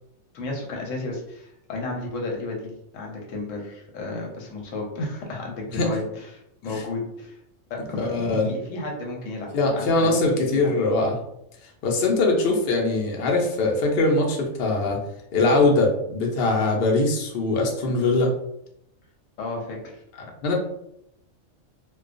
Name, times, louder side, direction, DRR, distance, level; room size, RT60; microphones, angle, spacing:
voice 1, 0.3-7.3 7.7-10.4 10.6-10.7 19.4-20.0, left 2 dB, 85° left, 0 dB, 1.0 m, -33 dB
voice 2, 8.0-8.5 9.5-11.2 11.8-15.0 15.3-18.3 20.2-20.5, left 2 dB, 60° left, 0 dB, 0.7 m, -22 dB
2.3 x 2.2 x 2.4 m, 0.78 s
omnidirectional pair, 1.3 m